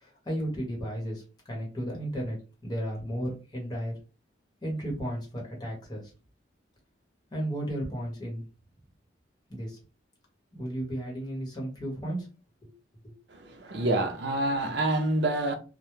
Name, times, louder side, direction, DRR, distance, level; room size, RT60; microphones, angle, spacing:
voice 1, 0.0-2.4 2.6-3.9 4.6-6.1 7.3-8.4 9.5-9.8 10.5-12.3 12.6-12.7, right 1 dB, 25° left, 0.9 m, -34 dB
voice 2, 13.3-15.5, right 1 dB, 70° right, 0.5 m, -27 dB
2.2 x 2.0 x 3.0 m
head